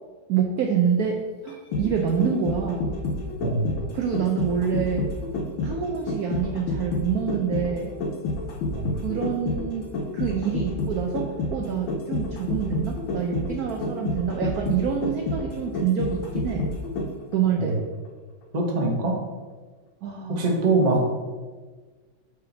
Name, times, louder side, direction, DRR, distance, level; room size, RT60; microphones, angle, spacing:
voice 1, 0.3-3.0 3.9-5.1 5.6-7.9 9.0-16.7 17.3-17.9 20.0-20.4, right 7 dB, 70° right, 2 dB, 0.9 m, -27 dB
sound 1, 1.5-17.4 17.7-17.8, left 2 dB, 85° left, 1.5 m, -29 dB
voice 2, 18.5-19.2 20.3-21.1, right 2 dB, 30° right, -1 dB, 0.7 m, -23 dB
5.7 x 4.9 x 3.9 m, 1.4 s
omnidirectional pair, 2.1 m